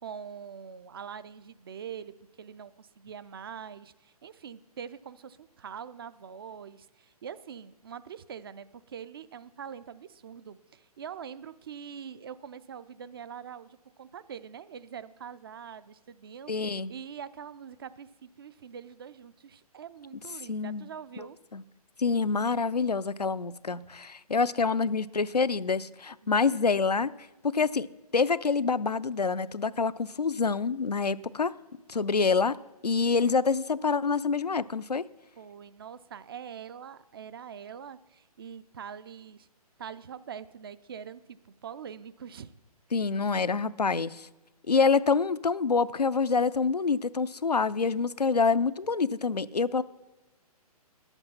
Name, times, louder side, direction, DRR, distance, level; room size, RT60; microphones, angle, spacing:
voice 1, 0.0-21.4 26.2-26.4 35.4-39.5 39.8-42.5, right 7 dB, 40° right, 0.4 m, -44 dB
voice 2, 16.5-16.9 20.5-20.9 21.5-21.6 22.0-27.1 27.4-27.9 28.1-31.5 31.9-32.6 32.8-35.1 42.9-44.3 44.7-49.8, left 4 dB, 90° left, 0.4 m, -26 dB
11.0 x 8.0 x 5.7 m
figure-of-eight pair, 130°, 20 cm